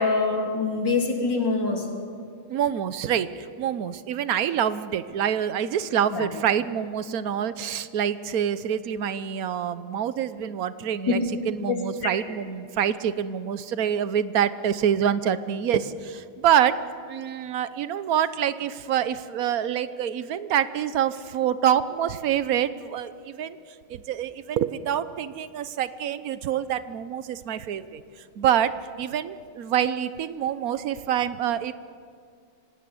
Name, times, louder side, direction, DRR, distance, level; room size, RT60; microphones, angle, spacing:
voice 1, 0.0-1.8 6.1-6.3 11.1-11.2 11.7-11.8 12.0-12.1, left 4 dB, 55° left, 1 dB, 3.8 m, -24 dB
voice 2, 2.5-11.2 11.5-16.8 17.1-23.6 23.9-28.0 28.4-31.7, right 9 dB, 55° right, 13 dB, 1.0 m, -26 dB
25.0 x 17.5 x 9.7 m, 2.3 s
omnidirectional pair, 2.3 m